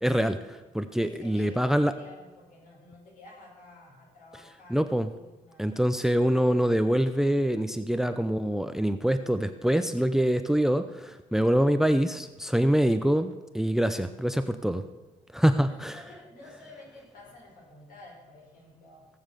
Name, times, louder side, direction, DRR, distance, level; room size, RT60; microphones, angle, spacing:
voice 1, 0.0-1.9 4.7-5.1 5.6-14.8 15.3-16.0, equal, 5° right, 10 dB, 0.6 m, -25 dB
voice 2, 1.0-5.7 10.0-10.1 15.6-19.1, left 2 dB, 75° left, -2 dB, 5.8 m, -51 dB
17.5 x 7.2 x 6.8 m, 1.2 s
cardioid pair, 135°, 14 cm